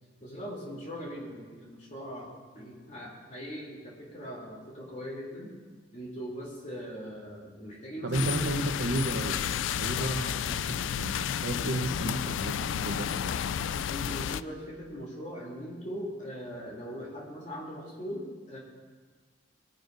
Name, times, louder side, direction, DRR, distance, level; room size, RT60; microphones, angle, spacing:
voice 1, 0.2-5.5 5.9-8.6 10.0-10.2 13.9-18.6, equal, 40° left, -3 dB, 3.2 m, -40 dB
voice 2, 8.0-9.4 9.8-13.3, right 1 dB, 85° right, 6 dB, 1.0 m, -33 dB
sound 1, 8.1-14.4, left 9 dB, 85° left, 0.3 m, -31 dB
19.5 x 10.0 x 2.7 m, 1.5 s
head